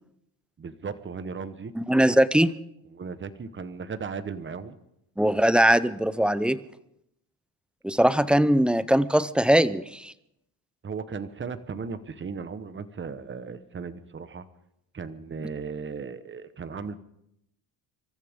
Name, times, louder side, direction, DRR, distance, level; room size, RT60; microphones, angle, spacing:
voice 1, 0.6-1.7 2.9-4.8 10.8-14.5 14.9-17.0, right 5 dB, 25° right, 12 dB, 1.2 m, -36 dB
voice 2, 1.8-2.5 5.2-6.6 7.8-10.1, right 1 dB, ahead, 15 dB, 0.5 m, -21 dB
26.5 x 14.0 x 3.7 m, 0.78 s
cardioid pair, 110°, 42 cm